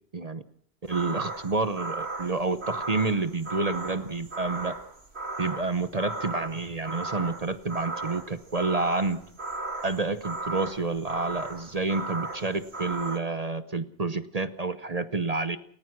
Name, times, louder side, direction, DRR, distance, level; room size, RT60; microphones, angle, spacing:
voice 1, 0.1-0.4 0.9-4.8 5.4-9.2 9.8-15.6, right 3 dB, 40° right, 11 dB, 1.0 m, -29 dB
sound 1, 0.9-13.2, right 2 dB, 80° right, 2.8 m, -36 dB
29.5 x 14.5 x 6.1 m, 0.64 s
omnidirectional pair, 1.1 m